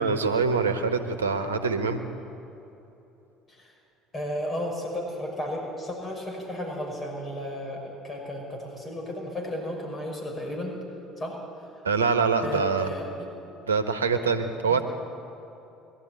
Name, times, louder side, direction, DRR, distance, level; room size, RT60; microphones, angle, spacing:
voice 1, 0.0-2.0 11.8-12.9 13.7-14.8, right 5 dB, 90° right, 8 dB, 1.3 m, -24 dB
voice 2, 4.1-10.7 11.2-11.4 12.4-13.1 14.7-14.8, left 1 dB, 35° left, 0 dB, 5.8 m, -33 dB
22.0 x 12.5 x 9.7 m, 3.0 s
hypercardioid pair, 65°, 0 cm